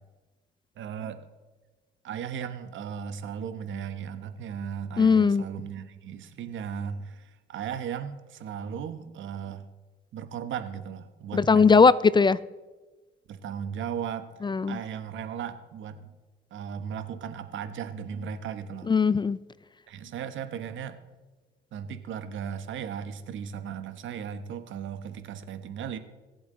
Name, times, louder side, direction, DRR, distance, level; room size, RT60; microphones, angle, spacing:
voice 1, 0.8-1.3 2.0-9.7 10.1-11.9 13.3-14.3 14.7-16.1 16.5-18.9 19.9-21.0 21.7-26.0, right 8 dB, 75° right, 10 dB, 1.1 m, -36 dB
voice 2, 5.0-5.5 11.3-12.4 14.4-14.8 18.9-19.4, left 5 dB, 25° left, 19 dB, 0.3 m, -19 dB
23.0 x 8.0 x 3.8 m, 1.2 s
cardioid pair, 90°, 20 cm